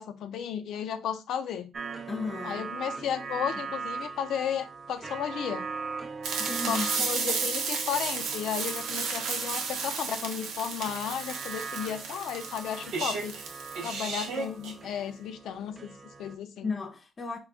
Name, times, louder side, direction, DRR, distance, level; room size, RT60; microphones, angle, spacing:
voice 1, 0.0-1.7 2.4-5.6 6.7-13.4 13.8-16.7, left 8 dB, 75° left, 0.5 m, -34 dB
sound 1, 1.7-16.4, right 5 dB, 35° right, 0.5 m, -41 dB
voice 2, 2.1-3.5 6.4-7.1 16.6-17.4, left 3 dB, 35° left, 0.6 m, -36 dB
sound 2, 6.2-14.7, right 5 dB, 85° right, 0.8 m, -33 dB
3.7 x 2.3 x 3.4 m
cardioid pair, 90°, 0 cm